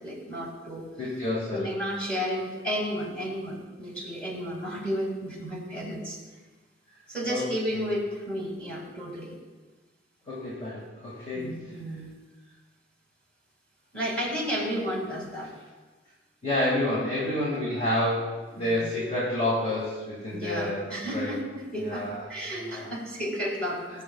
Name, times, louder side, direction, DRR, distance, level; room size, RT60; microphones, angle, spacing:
voice 1, 0.0-0.9 1.5-6.2 7.1-9.4 11.3-12.2 13.9-15.5 17.5-17.6 18.6-18.9 20.3-24.0, equal, 5° left, -2 dB, 2.1 m, -32 dB
voice 2, 1.0-1.7 7.3-7.8 10.3-11.5 16.4-20.8 21.1-21.4 21.8-22.2 22.6-22.9, left 1 dB, 35° left, -7 dB, 2.1 m, -29 dB
20.5 x 6.9 x 2.3 m, 1.3 s
head